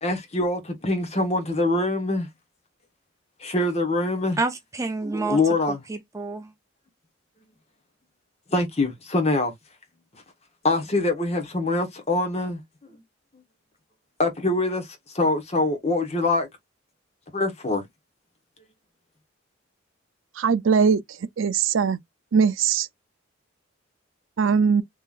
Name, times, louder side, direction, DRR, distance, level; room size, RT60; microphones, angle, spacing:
voice 1, 0.0-2.3 3.4-4.4 5.3-5.8 8.5-9.5 10.6-13.0 14.2-16.5 17.3-17.8, left 2 dB, 35° left, 1.2 m, -24 dB
voice 2, 4.4-6.5, right 3 dB, 15° right, 0.4 m, -29 dB
voice 3, 20.4-21.0 21.4-22.0 22.3-22.9 24.4-24.8, right 6 dB, 75° right, 0.5 m, -20 dB
3.7 x 3.2 x 2.4 m
head